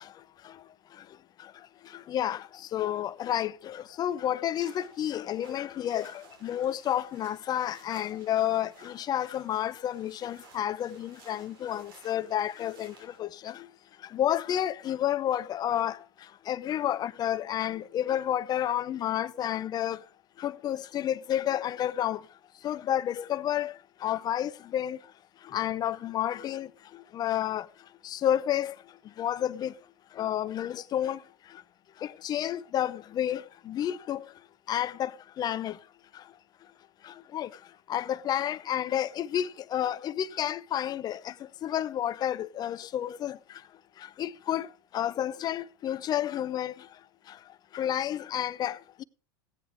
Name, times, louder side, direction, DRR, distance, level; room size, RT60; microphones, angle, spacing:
voice 1, 2.1-2.4 2.7-12.9 13.2-13.5 14.1-16.0 16.5-20.0 20.4-22.2 22.6-23.7 24.0-25.0 25.5-26.7 27.1-27.6 28.0-28.7 29.2-29.7 30.2-31.2 32.2-34.2 34.7-35.1 35.4-35.7 37.3-37.5 37.9-41.2 41.6-43.4 44.2-44.7 44.9-46.7 47.7-49.0, left 11 dB, 35° left, 0.8 m, -30 dB
sound 1, 4.5-13.2, right 4 dB, 80° right, 5.8 m, -56 dB
16.5 x 10.0 x 3.6 m
hypercardioid pair, 100°, 12 cm